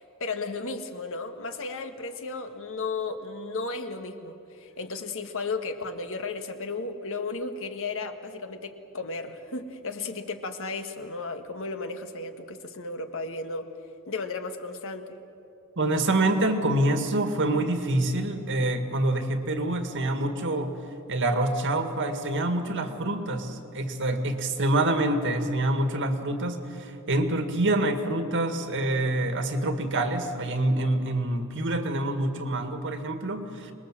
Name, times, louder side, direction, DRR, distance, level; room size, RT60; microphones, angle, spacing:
voice 1, 0.0-13.7 14.1-15.1, left 3 dB, 65° left, 6 dB, 1.6 m, -34 dB
voice 2, 15.8-20.8 21.1-33.7, right 1 dB, 60° right, 6 dB, 2.0 m, -26 dB
25.5 x 20.5 x 7.6 m, 2.8 s
head